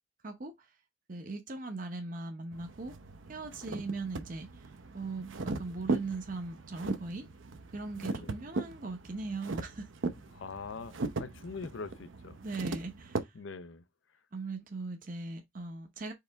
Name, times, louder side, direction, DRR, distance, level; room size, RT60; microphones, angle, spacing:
voice 1, 0.2-0.7 1.1-2.9 3.3-4.7 4.9-7.3 7.7-9.9 12.4-13.3 14.3-16.1, right 3 dB, 45° right, 0.7 m, -39 dB
sound 1, 2.5-13.2, right 3 dB, 80° right, 0.7 m, -38 dB
voice 2, 8.0-8.4 10.3-12.4 13.3-13.8, left 4 dB, 75° left, 0.6 m, -43 dB
4.8 x 3.2 x 3.4 m
head